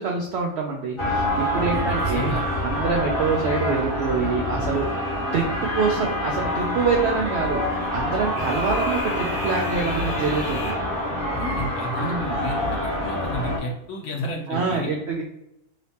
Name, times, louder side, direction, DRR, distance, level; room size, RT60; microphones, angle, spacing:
voice 1, 0.0-2.3 2.6-4.9 5.3-10.8 12.0-12.5 14.5-15.2, right 5 dB, 90° right, 1 dB, 0.5 m, -26 dB
sound 1, 1.0-13.6, left 1 dB, 40° left, 1.0 m, -26 dB
voice 2, 1.5-2.5 11.3-14.9, left 1 dB, 60° left, -1 dB, 0.9 m, -32 dB
3.2 x 2.9 x 2.8 m, 0.85 s
omnidirectional pair, 1.7 m